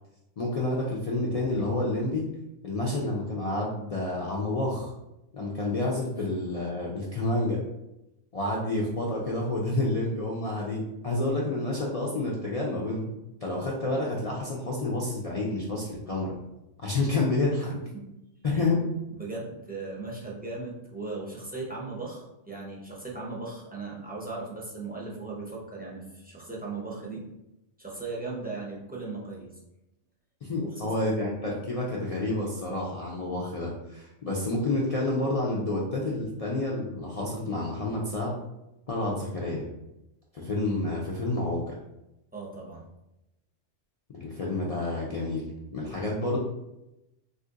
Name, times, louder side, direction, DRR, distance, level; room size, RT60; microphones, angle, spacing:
voice 1, 0.4-2.3 2.6-4.9 5.3-7.6 8.3-13.1 13.4-16.3 16.8-17.7 18.4-18.8 30.4-38.3 38.9-39.7 40.3-41.7 44.1-45.5 45.7-46.4, left 2 dB, 65° left, -4 dB, 0.3 m, -29 dB
voice 2, 17.6-18.1 18.5-18.7 19.1-27.2 27.8-29.5 30.5-30.9 40.4-40.5 42.3-42.9, right 3 dB, 15° right, -4 dB, 0.4 m, -38 dB
2.6 x 2.5 x 3.6 m, 0.90 s
omnidirectional pair, 1.3 m